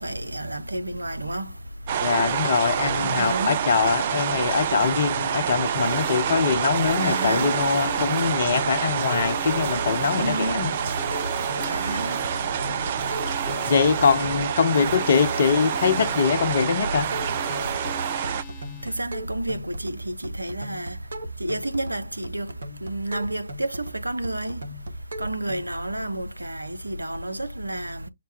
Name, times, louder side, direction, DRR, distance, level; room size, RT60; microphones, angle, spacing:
voice 1, 0.0-1.5 3.0-3.6 7.0-7.5 10.1-10.6 11.7-12.2 18.8-21.0 21.4-22.5 22.8-24.6 25.2-28.1, right 1 dB, 85° right, 0.7 m, -30 dB
sound 1, 1.9-18.4, right 9 dB, 40° right, 0.4 m, -27 dB
voice 2, 2.0-10.7 13.7-17.1, left 6 dB, 50° left, 0.6 m, -23 dB
sound 2, 5.8-19.0, left 3 dB, 20° left, 1.0 m, -39 dB
sound 3, 5.8-25.6, right 2 dB, 65° right, 1.1 m, -38 dB
5.8 x 2.2 x 3.4 m
figure-of-eight pair, 135°, 0 cm